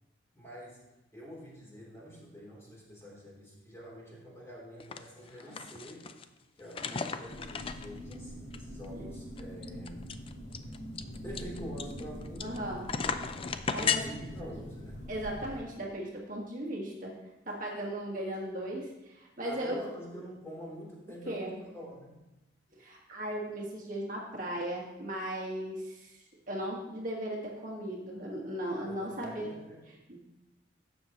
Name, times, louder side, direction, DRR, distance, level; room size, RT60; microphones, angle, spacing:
voice 1, 0.3-0.8 1.1-6.1 6.6-10.2 11.2-12.6 13.6-15.1 19.4-22.2 28.8-29.8, equal, 15° left, -5 dB, 3.0 m, -46 dB
sound 1, 4.8-5.0 5.3-6.2 6.7-8.1 8.5-8.6 8.8-8.9 9.4-12.6 12.9-14.0, left 6 dB, 30° left, 0.4 m, -34 dB
sound 2, 7.3-15.6, equal, 70° left, 2.5 m, -44 dB
voice 2, 12.4-12.9 13.7-14.0 15.1-17.1 17.5-19.7 21.3-21.6 22.7-29.5 30.1-30.2, right 1 dB, 45° right, -2 dB, 1.4 m, -37 dB
12.0 x 7.7 x 2.9 m, 1.0 s
head